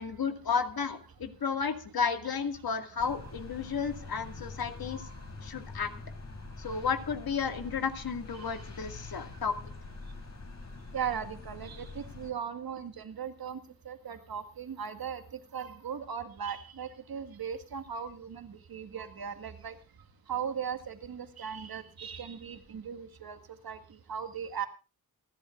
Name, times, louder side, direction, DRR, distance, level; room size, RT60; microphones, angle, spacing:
voice 1, 0.0-5.0 5.4-5.9 6.6-9.5, left 6 dB, 80° left, 7 dB, 2.1 m, -32 dB
sound 1, 3.0-12.3, left 3 dB, 45° left, 3.6 m, -45 dB
voice 2, 10.9-13.6 13.9-15.2 15.5-19.8 20.3-23.4 23.6-23.8 24.1-24.7, right 7 dB, 80° right, 8 dB, 2.0 m, -38 dB
28.5 x 11.0 x 2.5 m, 0.31 s
wide cardioid pair, 120°, 36 cm